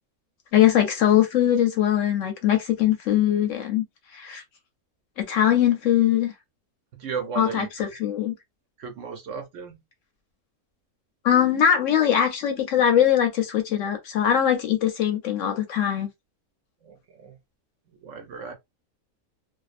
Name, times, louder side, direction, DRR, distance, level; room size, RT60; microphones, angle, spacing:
voice 1, 0.5-3.8 4.1-4.4 5.2-6.3 7.4-8.3 11.2-16.1, left 10 dB, 65° left, 0.8 m, -21 dB
voice 2, 6.9-7.9 8.8-9.7 16.8-17.4 17.9-18.5, right 6 dB, 65° right, 0.9 m, -35 dB
2.5 x 2.0 x 2.4 m
omnidirectional pair, 1.5 m